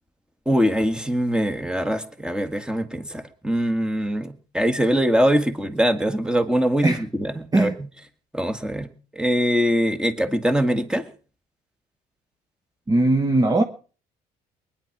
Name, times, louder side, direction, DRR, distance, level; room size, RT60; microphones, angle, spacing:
voice 1, 0.5-7.7 8.3-8.9 9.1-11.1, equal, 5° right, 8 dB, 1.8 m, -22 dB
voice 2, 12.9-13.6, right 2 dB, 20° right, 7 dB, 1.2 m, -19 dB
20.5 x 10.5 x 6.0 m, 0.40 s
cardioid pair, 110°, 17 cm